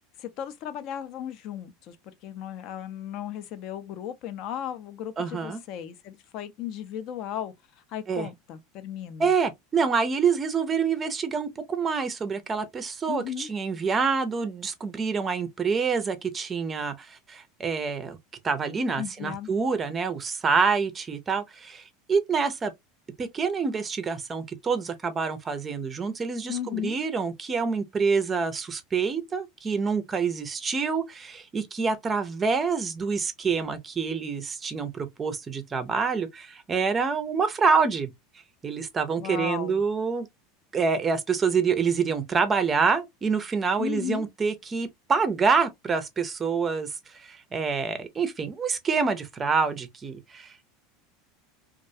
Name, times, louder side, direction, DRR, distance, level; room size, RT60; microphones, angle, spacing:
voice 1, 0.2-2.0 2.2-7.5 7.9-9.3 13.1-13.5 19.0-19.5 26.5-27.0 39.2-39.8 43.8-44.3, left 10 dB, 50° left, 0.4 m, -35 dB
voice 2, 5.2-5.6 8.1-8.3 9.2-18.2 18.4-22.7 23.2-38.1 38.6-40.3 40.7-50.6, right 5 dB, 20° right, 0.4 m, -27 dB
2.3 x 2.1 x 2.6 m
supercardioid pair, 130°, 0 cm